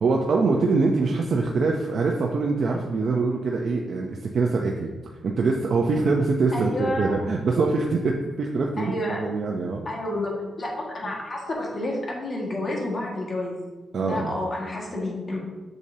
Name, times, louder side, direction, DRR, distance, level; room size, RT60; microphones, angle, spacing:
voice 1, 0.0-4.9 5.2-9.9 13.9-14.4, right 3 dB, 60° right, 0 dB, 0.7 m, -24 dB
voice 2, 6.5-7.3 8.8-9.3 9.9-13.6 14.0-15.4, left 1 dB, 40° left, -2 dB, 1.9 m, -30 dB
7.9 x 6.8 x 2.9 m, 1.2 s
cardioid pair, 90°, 0 cm